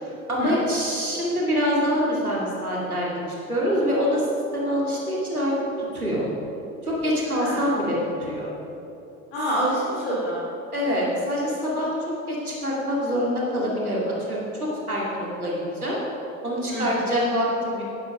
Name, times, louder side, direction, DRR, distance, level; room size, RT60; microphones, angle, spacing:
voice 1, 0.0-3.1 3.5-4.3 4.5-5.5 5.9-6.2 6.8-8.5 10.7-14.4 14.9-16.0 16.4-17.8, equal, 85° right, -5 dB, 2.6 m, -25 dB
voice 2, 7.2-7.7 9.3-10.5 16.7-17.0, equal, 60° left, -8 dB, 3.1 m, -27 dB
11.0 x 10.5 x 5.1 m, 2.9 s
figure-of-eight pair, 75°, 43 cm